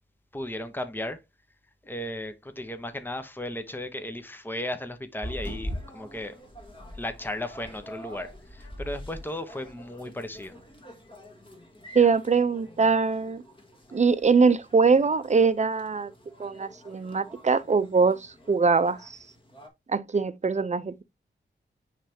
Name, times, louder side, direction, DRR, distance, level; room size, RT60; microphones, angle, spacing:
voice 1, 0.3-1.2 1.8-6.4 7.0-10.5, left 1 dB, 10° left, 1.0 m, -35 dB
sound 1, 5.2-19.7, equal, 25° left, 2.0 m, -44 dB
voice 2, 11.9-13.4 13.9-16.1 16.4-19.2 19.9-21.0, right 4 dB, 40° right, 0.7 m, -22 dB
9.8 x 3.4 x 2.9 m
cardioid pair, 70°, 19 cm